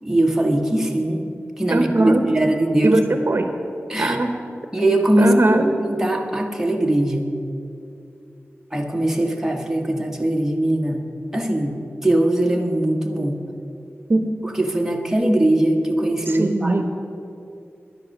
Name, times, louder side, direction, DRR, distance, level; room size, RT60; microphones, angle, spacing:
voice 1, 0.0-3.0 3.9-4.2 4.7-7.3 8.7-11.0 11.3-13.4 14.5-16.8, right 1 dB, 10° right, 1 dB, 1.4 m, -21 dB
voice 2, 1.7-2.2 2.8-3.5 4.0-4.3 5.2-5.6 14.1-14.3 16.3-16.8, right 2 dB, 55° right, 6 dB, 0.9 m, -19 dB
10.5 x 10.5 x 6.5 m, 2.6 s
wide cardioid pair, 65°, 5 cm